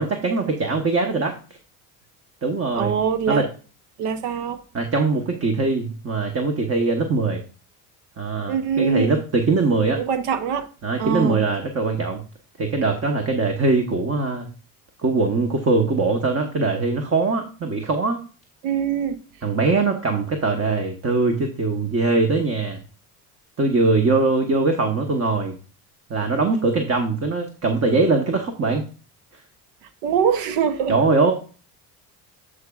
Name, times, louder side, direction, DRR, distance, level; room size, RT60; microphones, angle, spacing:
voice 1, 0.0-1.4 2.4-3.0 3.3-3.4 4.7-7.4 8.2-10.0 10.8-12.2 12.6-14.5 15.0-18.2 19.4-22.8 23.6-25.6 26.1-28.8 30.9-31.3, right 3 dB, 30° right, 1.2 m, -21 dB
voice 2, 2.7-3.5 4.0-4.6 8.5-9.2 9.9-10.7 11.0-11.4 18.6-19.2 29.8-30.9, right 7 dB, 85° right, 0.9 m, -23 dB
11.0 x 5.0 x 2.4 m
supercardioid pair, 90°, 45 cm